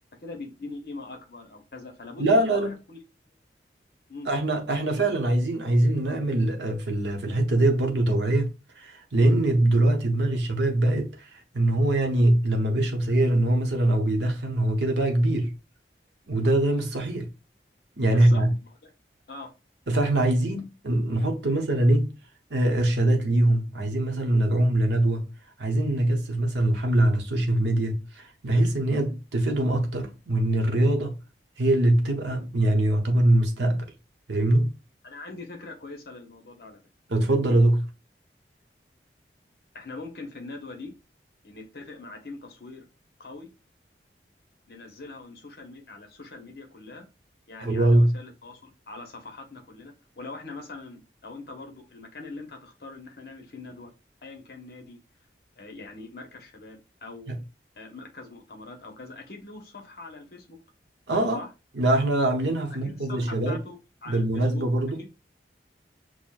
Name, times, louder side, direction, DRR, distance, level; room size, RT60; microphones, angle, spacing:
voice 1, 0.2-3.0 4.1-4.3 18.1-18.4 19.3-19.5 35.0-36.8 39.7-40.9 41.4-42.9 43.2-43.5 44.7-47.1 47.5-53.9 54.2-55.0 55.6-57.3 57.8-60.6 61.3-61.5 62.7-64.6 65.0-65.1, left 3 dB, 60° left, 0.9 m, -42 dB
voice 2, 2.2-2.8 4.3-15.5 16.3-17.3 18.0-18.5 19.9-22.1 22.5-25.3 25.6-31.2 31.6-33.9 34.3-34.7 37.1-37.9 47.6-48.1 57.3-57.4 61.1-61.4 61.7-63.6 64.1-65.0, right 1 dB, 85° right, 0.8 m, -23 dB
6.1 x 2.1 x 2.3 m
head